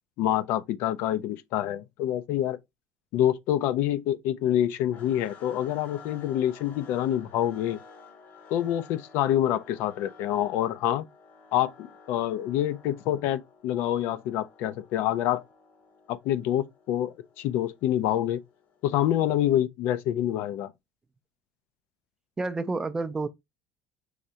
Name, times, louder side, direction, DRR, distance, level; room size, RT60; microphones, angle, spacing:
voice 1, 0.2-2.6 3.1-7.8 8.5-11.1 11.5-15.4 16.1-18.4 18.8-20.7, left 12 dB, 65° left, 0.4 m, -27 dB
sound 1, 4.9-19.0, left 4 dB, 45° left, 0.9 m, -53 dB
voice 2, 22.4-23.3, right 3 dB, 15° right, 0.4 m, -29 dB
4.8 x 3.2 x 2.7 m
cardioid pair, 140°, 4 cm